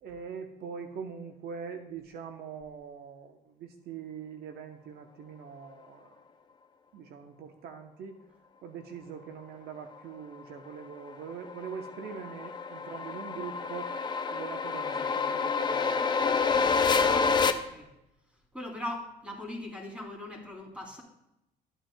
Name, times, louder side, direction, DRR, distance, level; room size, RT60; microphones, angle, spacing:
voice 1, 0.0-6.1 6.9-8.2 8.6-14.0 14.3-16.6, right 6 dB, 70° right, 5 dB, 0.9 m, -43 dB
sound 1, 10.9-17.5, left 5 dB, 25° left, 0.6 m, -28 dB
voice 2, 17.1-17.9 18.5-21.0, left 1 dB, 5° right, -1 dB, 2.9 m, -40 dB
13.0 x 9.0 x 2.3 m, 0.85 s
cardioid pair, 110°, 17 cm